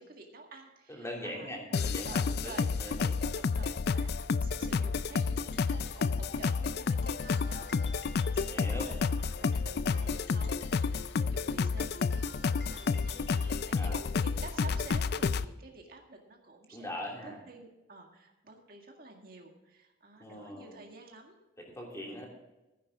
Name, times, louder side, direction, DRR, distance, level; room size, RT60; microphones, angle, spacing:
voice 1, 0.0-21.4, right 3 dB, 50° right, 1 dB, 1.9 m, -51 dB
voice 2, 0.9-3.3 8.4-8.9 13.7-14.0 16.7-17.4 20.2-20.8 21.6-22.3, left 1 dB, 15° left, -1 dB, 2.9 m, -41 dB
sound 1, 1.7-15.4, left 5 dB, 55° left, 0.4 m, -30 dB
sound 2, 5.0-14.1, left 3 dB, 70° left, 1.8 m, -54 dB
15.0 x 9.9 x 3.7 m, 1.0 s
head